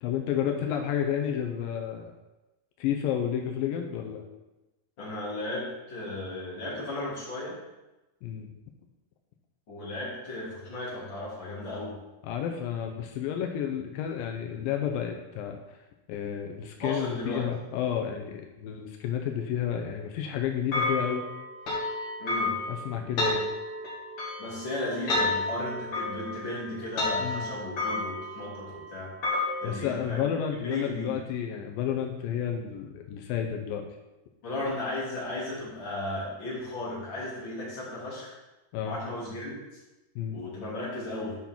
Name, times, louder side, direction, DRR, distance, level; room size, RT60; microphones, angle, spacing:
voice 1, 0.0-2.1 2.8-4.2 8.2-8.5 12.2-15.6 16.1-21.3 22.7-23.5 27.2-27.5 29.6-33.9 38.7-39.0 40.2-40.4, left 9 dB, 85° left, 3 dB, 2.5 m, -31 dB
voice 2, 5.0-7.6 9.7-12.0 16.8-17.5 22.2-22.6 24.4-29.1 29.6-30.3 30.6-31.1 34.4-38.3 38.8-39.5 40.3-41.4, left 1 dB, 35° left, -7 dB, 3.4 m, -35 dB
sound 1, 20.7-29.7, left 2 dB, 55° left, 3.3 m, -31 dB
9.6 x 5.6 x 4.4 m, 1.0 s
omnidirectional pair, 3.9 m